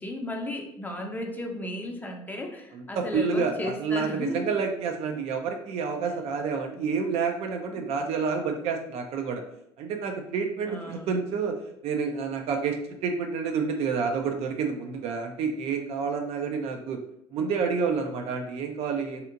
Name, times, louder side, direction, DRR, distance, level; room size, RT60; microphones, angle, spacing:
voice 1, 0.0-4.4 7.8-7.9 10.7-11.2, left 1 dB, 15° left, 2 dB, 0.5 m, -35 dB
voice 2, 2.7-9.4 9.8-11.5 11.8-17.0 17.3-19.2, right 5 dB, 50° right, 4 dB, 0.4 m, -29 dB
2.8 x 2.4 x 2.4 m, 0.75 s
figure-of-eight pair, 55°, 14 cm